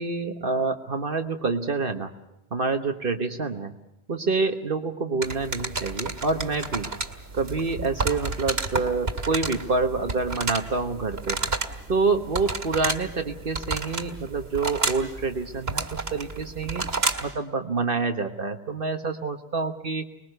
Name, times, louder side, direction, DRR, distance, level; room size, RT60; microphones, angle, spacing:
voice 1, 0.0-2.1 2.5-3.7 4.1-6.9 7.3-11.4 11.9-16.9 17.2-20.0, right 4 dB, 60° right, 6 dB, 1.5 m, -27 dB
sound 1, 5.2-17.4, right 3 dB, 75° right, 2.4 m, -31 dB
26.0 x 21.5 x 6.7 m, 0.87 s
omnidirectional pair, 1.0 m